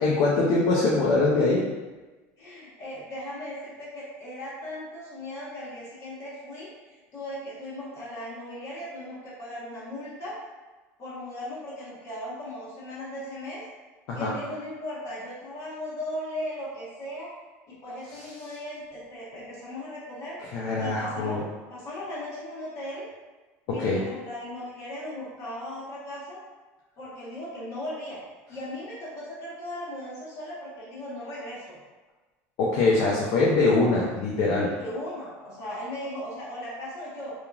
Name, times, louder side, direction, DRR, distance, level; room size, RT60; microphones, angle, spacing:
voice 1, 0.0-1.6 14.1-14.3 18.1-18.2 20.5-21.4 23.7-24.0 32.6-34.7, left 3 dB, 65° left, -4 dB, 0.5 m, -23 dB
voice 2, 2.4-10.4 11.0-13.6 14.1-17.3 17.7-20.4 20.8-23.0 23.7-26.4 27.0-28.2 28.5-31.8 34.8-37.3, left 1 dB, 45° left, -8 dB, 1.4 m, -37 dB
2.9 x 2.4 x 2.4 m, 1.2 s
supercardioid pair, 115°, 7 cm